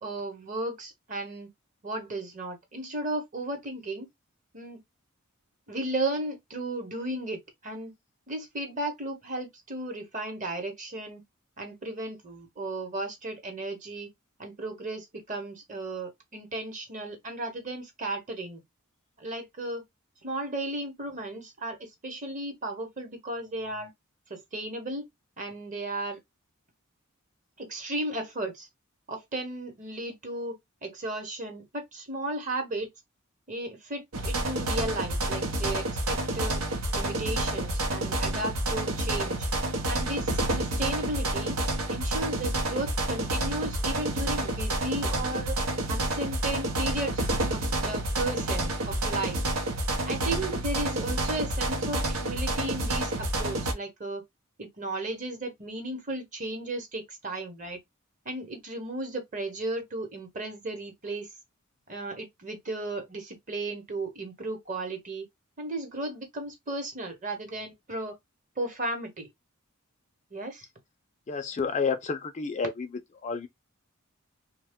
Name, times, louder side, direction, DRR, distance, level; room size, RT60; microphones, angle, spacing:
voice 1, 0.0-1.5 1.8-4.1 4.5-4.8 5.7-7.9 8.3-11.2 11.6-14.1 14.4-18.6 19.2-19.8 20.2-23.9 24.3-25.1 25.4-26.2 27.6-28.7 29.1-32.9 33.5-36.6 36.9-39.5 39.9-41.6 41.9-45.6 45.9-49.4 50.1-54.2 54.6-57.8 58.2-61.3 61.9-65.3 65.6-68.2 68.6-69.3 70.3-70.7, right 2 dB, 35° right, 0.9 m, -35 dB
sound 1, 34.1-53.7, right 1 dB, 90° right, 0.8 m, -29 dB
voice 2, 71.3-72.9 73.2-73.5, left 5 dB, 35° left, 0.4 m, -30 dB
2.8 x 2.2 x 3.4 m
head